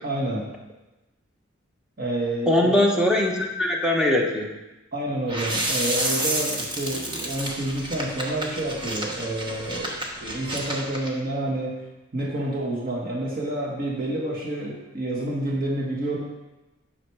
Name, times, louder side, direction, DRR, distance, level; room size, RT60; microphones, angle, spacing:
voice 1, 0.0-0.4 2.0-2.9 4.9-11.8 12.1-16.2, right 1 dB, 45° right, -3 dB, 1.6 m, -28 dB
voice 2, 2.5-4.5, left 1 dB, 5° right, 0 dB, 1.0 m, -21 dB
sound 1, 5.3-11.1, right 1 dB, 25° right, 1.2 m, -30 dB
9.6 x 6.3 x 4.8 m, 1.0 s
head